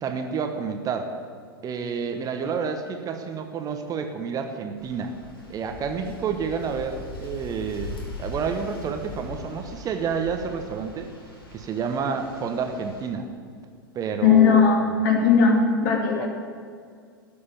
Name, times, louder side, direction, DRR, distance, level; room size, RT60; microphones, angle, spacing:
voice 1, 0.0-1.1 1.6-5.1 5.5-7.9 8.2-11.1 11.5-13.3 13.9-14.7 16.2-16.3, right 6 dB, 30° right, 6 dB, 1.2 m, -29 dB
sound 1, 4.8-13.1, left 2 dB, 85° left, 3.2 m, -41 dB
voice 2, 14.2-16.3, left 6 dB, 55° left, 1 dB, 2.6 m, -18 dB
12.5 x 6.9 x 8.4 m, 2.1 s
figure-of-eight pair, 95°, 12 cm